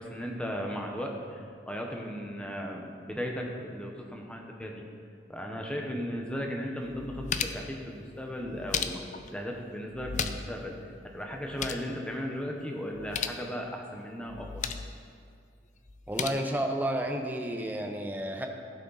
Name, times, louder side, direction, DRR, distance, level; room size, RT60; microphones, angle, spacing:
voice 1, 0.0-4.8 5.3-9.0 9.3-14.7, equal, 5° left, 0 dB, 1.0 m, -36 dB
sound 1, 6.3-6.4 6.8-7.7 8.4-9.3 9.9-10.6 10.9-11.0 11.3-11.9 12.9-13.4 14.3-14.9 15.9-16.3, left 7 dB, 40° left, 0.4 m, -35 dB
voice 2, 16.1-18.5, right 1 dB, 10° right, 4 dB, 0.7 m, -31 dB
15.5 x 6.3 x 4.1 m, 2.2 s
head